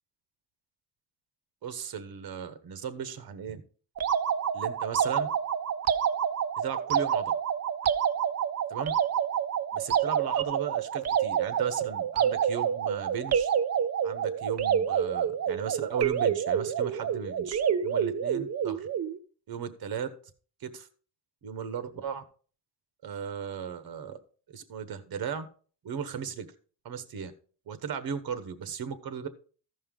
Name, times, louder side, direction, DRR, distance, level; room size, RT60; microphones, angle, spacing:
voice 1, 1.6-3.6 4.5-5.3 6.6-7.3 8.7-8.9 9.7-13.5 14.0-18.9 19.5-20.1 20.6-20.9 21.4-22.2 23.0-24.2 24.5-25.5 25.8-26.5 26.8-27.3 27.7-29.3, right 7 dB, 60° right, 11 dB, 1.2 m, -36 dB
sound 1, 4.0-19.2, right 8 dB, 40° right, 0.5 m, -28 dB
14.5 x 5.5 x 3.8 m, 0.41 s
wide cardioid pair, 155°, 41 cm